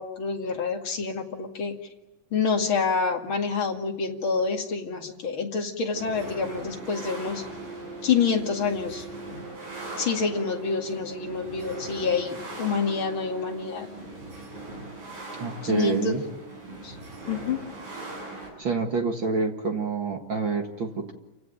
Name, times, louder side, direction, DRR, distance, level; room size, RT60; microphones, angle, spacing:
voice 1, 0.0-1.7 2.3-7.4 8.0-9.0 10.0-13.9 15.6-16.2 16.8-16.9 17.3-17.6, left 5 dB, 40° left, 2 dB, 2.6 m, -27 dB
sound 1, 5.9-18.5, right 2 dB, 60° right, 9.5 m, -40 dB
voice 2, 15.4-16.2 18.6-21.1, right 4 dB, 45° right, 3 dB, 1.9 m, -27 dB
29.0 x 17.0 x 9.2 m, 1.0 s
omnidirectional pair, 3.9 m